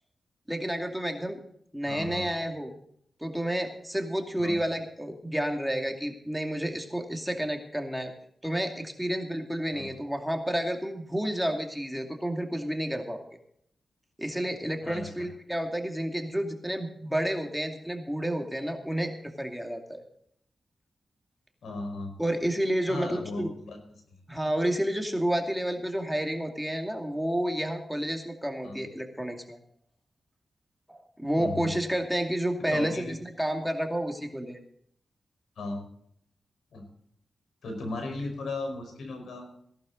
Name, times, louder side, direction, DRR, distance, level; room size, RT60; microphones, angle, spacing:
voice 1, 0.5-1.4 1.7-2.7 3.2-8.1 8.4-13.2 14.2-20.0 22.2-23.5 24.3-29.6 30.9-34.6, right 1 dB, 5° right, 3 dB, 2.5 m, -30 dB
voice 2, 1.9-2.3 4.4-4.6 9.7-9.9 14.8-15.3 21.6-22.1 22.9-23.8 24.1-24.2 28.6-28.8 31.3-31.8 32.7-33.1 35.6-35.8 36.7-36.8 37.6-39.6, left 2 dB, 90° left, 4 dB, 4.9 m, -36 dB
17.5 x 11.5 x 4.0 m, 0.69 s
cardioid pair, 80°, 0 cm